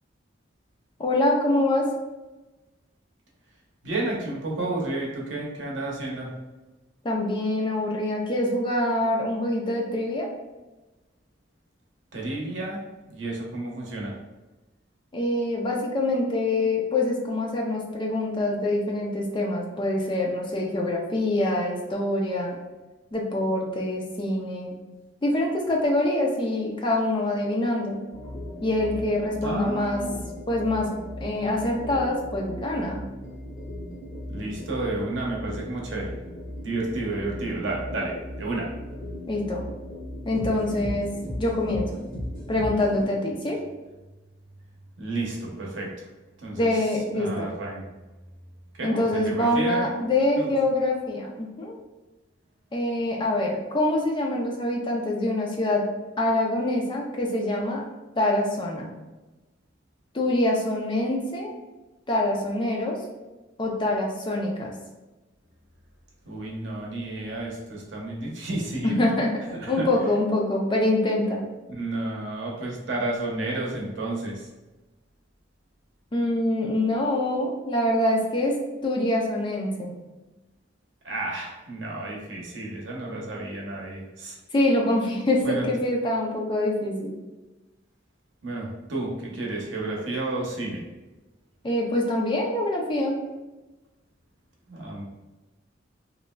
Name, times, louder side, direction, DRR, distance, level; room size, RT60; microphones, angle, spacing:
voice 1, 1.0-1.9 7.0-10.3 15.1-22.5 23.1-24.7 25.2-28.0 28.6-30.0 30.5-30.9 31.2-33.0 39.3-39.6 40.3-41.1 41.4-42.0 42.5-43.6 46.6-47.5 48.8-51.8 52.7-55.9 56.2-57.8 58.2-58.9 60.1-61.5 62.1-63.0 63.6-64.7 68.8-69.3 69.7-71.4 76.1-79.9 84.5-87.2 91.6-93.2, left 1 dB, 25° left, -1 dB, 0.4 m, -25 dB
voice 2, 3.8-6.3 12.1-12.8 13.1-14.1 29.4-30.2 34.3-36.1 36.6-38.7 45.0-46.0 46.4-46.7 47.1-47.8 48.8-49.8 50.4-50.5 66.2-69.0 69.6-69.9 71.7-74.4 81.0-84.4 85.4-85.7 88.4-90.8 94.7-95.0, right 2 dB, 70° right, -2 dB, 0.8 m, -31 dB
sound 1, 28.1-43.1, left 1 dB, 45° left, 1.3 m, -37 dB
3.0 x 2.5 x 2.2 m, 1.1 s
head